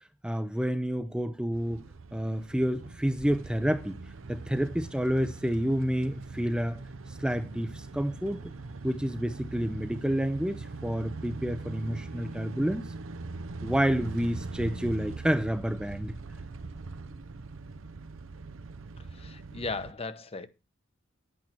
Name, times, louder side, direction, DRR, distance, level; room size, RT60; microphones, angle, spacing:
voice 1, 0.2-4.0 4.3-6.8 7.1-8.5 8.8-12.8 13.6-16.2, equal, 5° right, 0.5 m, -29 dB
sound 1, 1.5-19.9, right 3 dB, 75° right, 0.7 m, -41 dB
voice 2, 19.1-20.5, left 3 dB, 30° left, 0.9 m, -37 dB
10.5 x 8.5 x 4.4 m
head